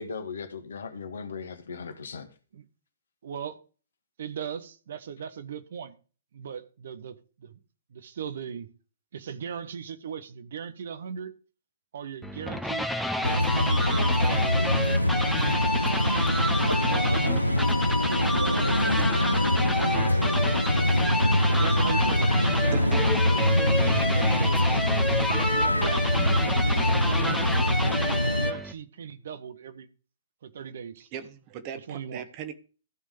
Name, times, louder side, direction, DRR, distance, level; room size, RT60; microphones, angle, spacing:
voice 1, 0.0-2.3, left 5 dB, 65° left, 1.9 m, -37 dB
voice 2, 3.2-3.6 4.2-5.9 6.3-7.6 7.9-8.7 9.1-11.3 11.9-12.9 13.1-14.7 16.8-17.6 17.9-20.4 21.5-24.8 25.5-27.6 28.0-29.9 30.4-31.1 31.9-32.2, right 7 dB, 55° right, 1.2 m, -39 dB
sound 1, 12.2-28.7, left 1 dB, ahead, 1.1 m, -30 dB
sound 2, 13.2-28.5, left 1 dB, 90° left, 0.4 m, -24 dB
voice 3, 22.7-23.0 24.5-24.6 31.1-32.5, right 8 dB, 35° right, 1.6 m, -38 dB
15.0 x 5.6 x 4.9 m
figure-of-eight pair, 115°, 0 cm